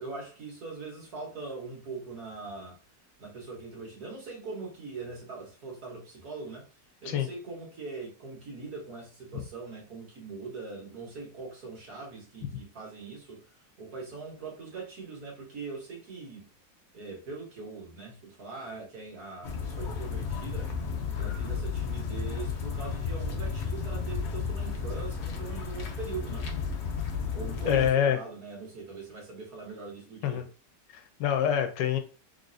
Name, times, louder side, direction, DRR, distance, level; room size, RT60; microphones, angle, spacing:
voice 1, 0.0-2.8 3.2-6.7 7.0-13.4 13.8-16.5 16.9-20.7 21.1-26.5 27.3-30.5, right 4 dB, 60° right, 1.7 m, -41 dB
sound 1, 19.4-27.9, left 5 dB, 65° left, 0.7 m, -33 dB
voice 2, 27.6-28.2 30.2-30.4 30.9-32.0, left 9 dB, 85° left, 1.3 m, -26 dB
4.0 x 3.2 x 2.6 m
omnidirectional pair, 1.9 m